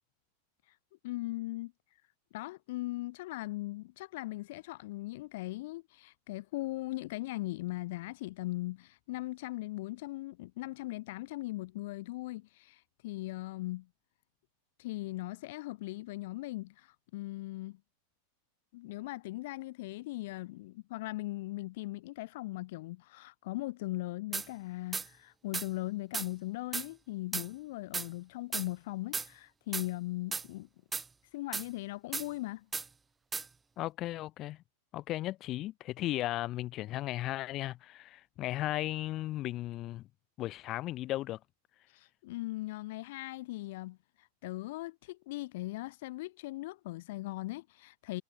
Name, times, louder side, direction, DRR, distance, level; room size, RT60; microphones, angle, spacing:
voice 1, 1.0-1.7 2.3-13.9 14.8-17.8 18.7-30.7 31.3-32.7 41.9-48.2, left 19 dB, 50° left, 4.7 m, -39 dB
sound 1, 24.3-24.5 24.9-25.1 25.5-25.7 26.1-26.3 26.7-26.9 27.3-27.5 27.9-28.1 28.5-28.7 29.1-29.3 29.7-29.9 30.3-30.5 30.9-31.1 31.5-31.7 32.1-32.3 32.7-32.9 33.3-33.5, right 4 dB, 15° right, 2.6 m, -35 dB
voice 2, 33.8-34.6 34.9-40.1 40.4-41.4, left 15 dB, 35° left, 5.5 m, -36 dB
figure-of-eight pair, 90°, 0 cm